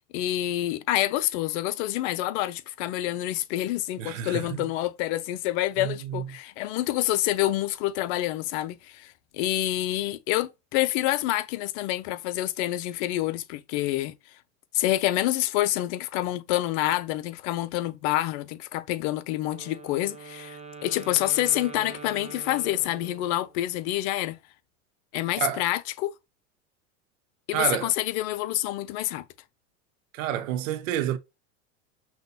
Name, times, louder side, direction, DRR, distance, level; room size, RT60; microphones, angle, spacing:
voice 1, 0.1-14.1 14.7-24.4 25.1-26.1 27.5-29.2, left 15 dB, 55° left, 0.7 m, -27 dB
voice 2, 4.0-4.6 5.8-6.2 25.4-25.6 27.5-27.9 30.1-31.2, right 10 dB, 70° right, 0.7 m, -29 dB
Wind instrument woodwind instrument, 19.5-23.6, right 4 dB, 15° right, 1.3 m, -43 dB
5.8 x 2.5 x 2.7 m
hypercardioid pair, 110°, 40 cm